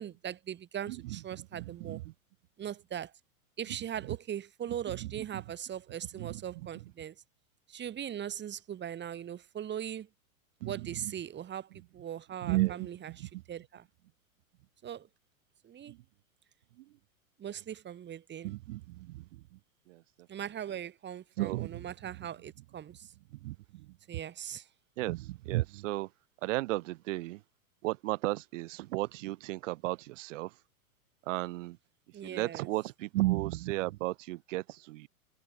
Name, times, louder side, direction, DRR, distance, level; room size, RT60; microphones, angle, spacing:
voice 1, 0.0-2.0 2.6-3.1 3.6-7.1 7.7-10.1 10.6-13.8 14.8-15.1 15.6-15.9 17.4-18.5 20.3-23.1 24.1-24.7 32.1-32.7, right 10 dB, 25° right, 5.2 m, -40 dB
voice 2, 0.9-1.2 1.7-2.0 5.0-5.4 6.2-6.4 10.6-11.1 12.4-12.9 13.2-13.4 15.9-16.0 18.4-19.6 19.9-20.0 21.4-21.9 23.4-23.9 25.0-26.1 26.4-27.4 27.8-30.5 31.3-31.8 32.2-35.1, right 19 dB, 55° right, 2.3 m, -34 dB
hypercardioid pair, 120°, 44 cm